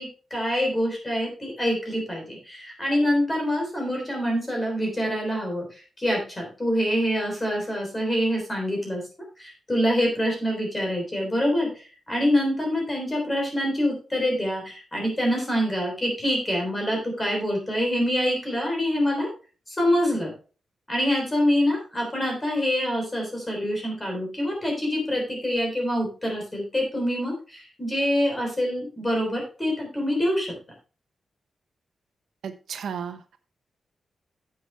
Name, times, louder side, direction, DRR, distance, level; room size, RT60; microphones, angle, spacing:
voice 1, 0.0-9.0 9.4-19.3 19.7-20.3 20.9-30.5, equal, 15° left, 1 dB, 3.6 m, -25 dB
voice 2, 32.4-33.4, right 7 dB, 85° right, 9 dB, 0.9 m, -34 dB
9.8 x 7.8 x 3.4 m, 0.35 s
wide cardioid pair, 175°, 0 cm